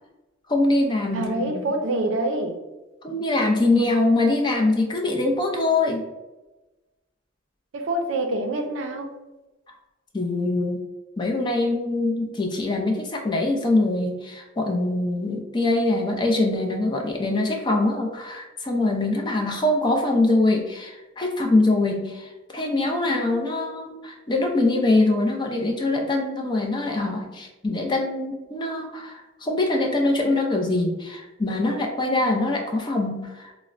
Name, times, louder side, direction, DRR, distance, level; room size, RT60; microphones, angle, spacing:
voice 1, 0.5-1.7 3.0-6.0 10.1-10.8 11.2-33.5, left 2 dB, 20° left, 1 dB, 0.4 m, -23 dB
voice 2, 1.1-2.5 7.7-9.1, right 1 dB, 80° right, 3 dB, 0.4 m, -26 dB
4.1 x 2.0 x 2.4 m, 1.1 s
head